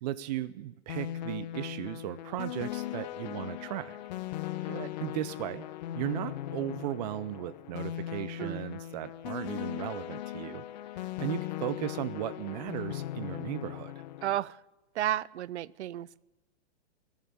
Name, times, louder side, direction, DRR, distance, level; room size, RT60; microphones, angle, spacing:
voice 1, 0.0-4.0 4.6-5.7 5.9-10.6 10.9-13.9, right 13 dB, 40° right, 14 dB, 0.5 m, -36 dB
sound 1, 0.9-14.4, left 13 dB, 40° left, 0.6 m, -38 dB
voice 2, 14.2-14.6 14.9-16.3, right 12 dB, 80° right, 23 dB, 0.6 m, -33 dB
22.0 x 7.4 x 8.7 m, 1.1 s
hypercardioid pair, 155°, 33 cm